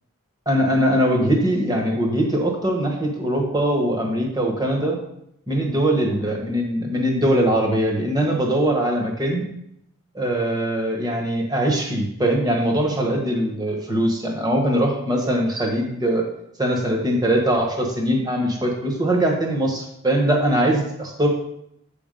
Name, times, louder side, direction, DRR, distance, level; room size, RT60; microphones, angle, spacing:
voice 1, 0.5-5.0 5.5-9.4 10.1-16.2 16.6-21.3, right 1 dB, 20° right, 0 dB, 1.2 m, -21 dB
8.1 x 3.5 x 5.2 m, 0.76 s
head